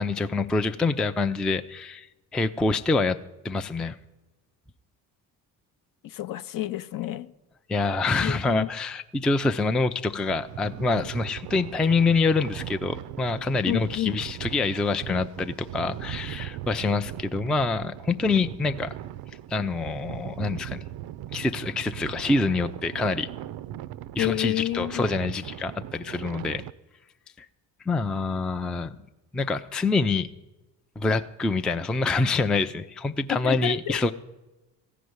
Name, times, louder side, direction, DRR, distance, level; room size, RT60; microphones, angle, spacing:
voice 1, 0.0-2.1 2.3-3.2 3.4-4.0 7.7-18.9 19.5-20.8 21.3-23.3 24.2-26.6 27.4-27.5 27.9-29.0 29.3-30.3 31.0-34.1, left 3 dB, ahead, 0.3 m, -26 dB
voice 2, 6.0-7.3 8.2-8.7 13.6-14.2 24.2-25.0 33.3-34.0, left 13 dB, 45° left, 0.6 m, -29 dB
sound 1, 10.3-26.7, right 13 dB, 50° right, 0.5 m, -39 dB
15.5 x 5.1 x 9.4 m
hypercardioid pair, 60°, 46 cm